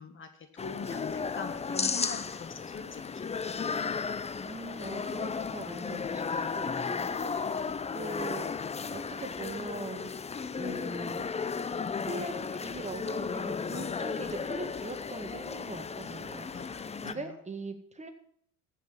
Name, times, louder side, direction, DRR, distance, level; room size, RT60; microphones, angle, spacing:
voice 1, 0.0-4.1 13.7-14.3 16.5-17.3, left 5 dB, 35° left, 8 dB, 1.7 m, -44 dB
sound 1, 0.6-17.1, left 5 dB, 20° left, 0.6 m, -34 dB
voice 2, 4.4-7.6 7.9-10.1 10.5-11.3 12.0-16.7 17.0-18.1, right 2 dB, 20° right, 6 dB, 1.8 m, -41 dB
14.5 x 5.9 x 7.5 m, 0.64 s
supercardioid pair, 90°, 34 cm